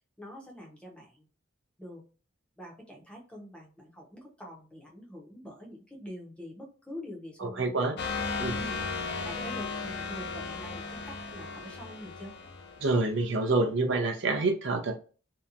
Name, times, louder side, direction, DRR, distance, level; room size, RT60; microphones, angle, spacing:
voice 1, 0.2-1.3 1.8-2.0 2.6-8.0 8.6-8.8 9.2-12.3, equal, 5° left, -2 dB, 0.7 m, -45 dB
voice 2, 7.4-8.0 8.4-8.6 12.8-15.0, right 3 dB, 60° right, 4 dB, 0.5 m, -27 dB
sound 1, 8.0-13.4, left 4 dB, 55° left, 0.4 m, -36 dB
2.8 x 2.2 x 2.4 m, 0.36 s
head